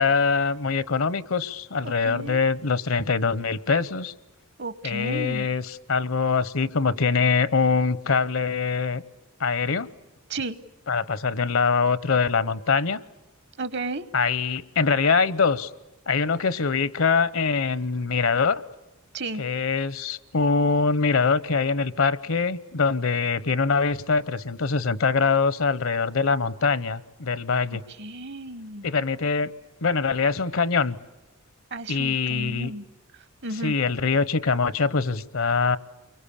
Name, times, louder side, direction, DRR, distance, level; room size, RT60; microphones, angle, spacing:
voice 1, 0.0-4.1 4.8-9.0 9.4-9.9 10.9-13.0 14.1-15.7 16.1-18.6 19.4-27.8 28.8-29.5 29.8-31.0 31.9-32.7 33.6-35.8, left 5 dB, 70° left, 17 dB, 0.9 m, -23 dB
voice 2, 1.8-2.4 4.6-5.5 10.3-10.6 13.6-14.1 19.1-19.4 27.7-28.9 31.7-32.8 33.4-33.7, right 2 dB, 55° right, 15 dB, 1.0 m, -33 dB
29.5 x 23.5 x 8.6 m, 1.0 s
head